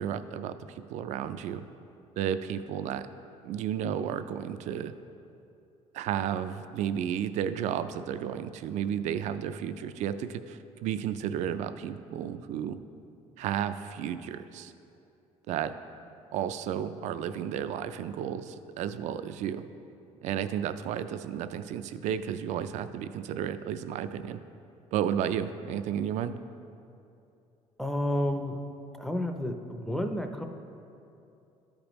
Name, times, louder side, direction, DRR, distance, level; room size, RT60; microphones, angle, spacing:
voice 1, 0.0-1.6 2.2-3.0 3.4-4.9 5.9-12.8 13.4-14.7 15.5-15.7 16.3-19.6 20.2-24.4 24.9-26.3, right 9 dB, 70° right, 11 dB, 0.4 m, -32 dB
voice 2, 27.8-28.6 29.0-30.4, left 1 dB, 5° left, 5 dB, 0.5 m, -30 dB
13.0 x 5.1 x 3.0 m, 2.7 s
cardioid pair, 120°, 12 cm